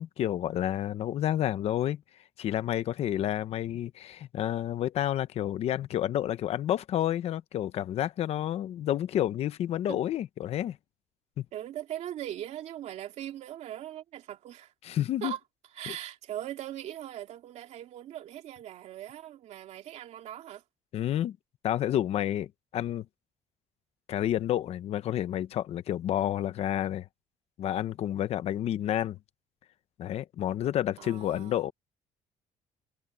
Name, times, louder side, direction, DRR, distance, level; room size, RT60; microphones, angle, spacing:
voice 1, 0.0-2.0 2.4-10.8 14.8-15.3 15.9-16.0 20.9-21.4 21.6-23.1 24.1-27.1 27.6-29.2 30.0-31.7, left 11 dB, 50° left, 0.9 m, -30 dB
voice 2, 11.5-14.7 15.2-15.4 15.7-20.6 31.0-31.6, right 12 dB, 55° right, 2.7 m, -40 dB
cardioid pair, 175°, 14 cm